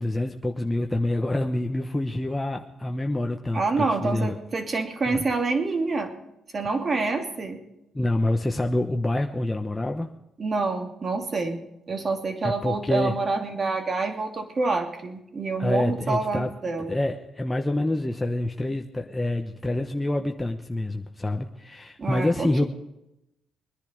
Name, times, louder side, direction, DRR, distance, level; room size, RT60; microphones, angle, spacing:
voice 1, 0.0-4.3 5.1-5.2 7.9-10.1 12.4-13.2 15.6-16.5 16.8-22.6, left 1 dB, 15° left, 3 dB, 1.1 m, -27 dB
voice 2, 3.5-6.1 6.5-7.6 10.4-17.0 22.0-22.7, right 3 dB, 40° right, 4 dB, 2.8 m, -27 dB
22.0 x 10.5 x 5.1 m, 0.88 s
cardioid pair, 90°, 0 cm